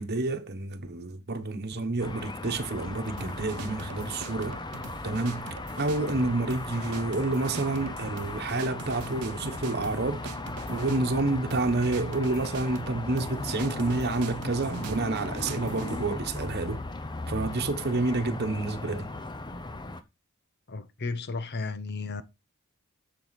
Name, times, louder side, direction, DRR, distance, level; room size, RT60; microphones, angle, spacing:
voice 1, 0.0-4.6 5.0-10.3 10.7-16.8 17.3-19.1, right 2 dB, 45° right, 1.2 m, -29 dB
sound 1, 2.0-20.0, left 2 dB, 20° left, 0.8 m, -37 dB
sound 2, 3.2-16.5, right 6 dB, 85° right, 0.6 m, -44 dB
voice 2, 20.7-22.2, left 3 dB, 50° left, 0.9 m, -34 dB
7.6 x 7.0 x 4.1 m
head